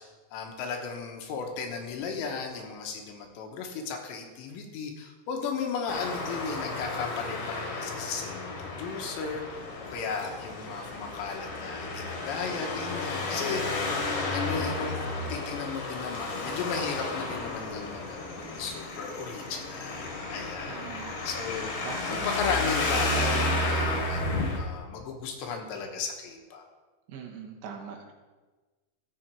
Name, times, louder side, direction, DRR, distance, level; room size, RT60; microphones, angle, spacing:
voice 1, 0.0-13.8 14.3-21.7 22.1-26.6, left 5 dB, 75° left, 3 dB, 3.2 m, -35 dB
Traffic noise roadway noise, 5.9-24.6, left 2 dB, 55° left, 2.7 m, -32 dB
voice 2, 20.7-21.2 21.8-22.3 27.1-28.1, right 6 dB, 75° right, 1 dB, 3.4 m, -41 dB
14.5 x 7.1 x 4.6 m, 1.3 s
omnidirectional pair, 5.4 m